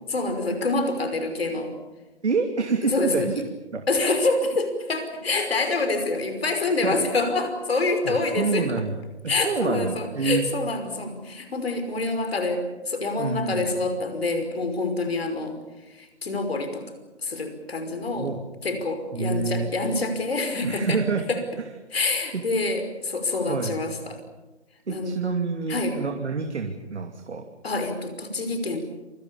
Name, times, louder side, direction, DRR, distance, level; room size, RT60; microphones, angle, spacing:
voice 1, 0.1-1.7 2.9-3.3 3.9-8.7 9.3-15.6 16.0-16.8 17.2-18.3 18.6-21.0 21.3-21.4 21.9-24.2 24.9-25.2 25.7-26.0 27.6-28.8, left 3 dB, 60° left, 8 dB, 5.5 m, -26 dB
voice 2, 2.2-3.4 3.7-3.9 6.8-7.0 8.0-9.0 9.2-10.5 13.2-13.7 18.2-18.4 19.1-19.7 20.6-21.3 21.6-21.7 22.3-22.4 23.4-23.8 24.9-27.5, right 4 dB, 75° right, 4 dB, 2.8 m, -27 dB
27.5 x 23.0 x 7.1 m, 1.1 s
hypercardioid pair, 170°, 34 cm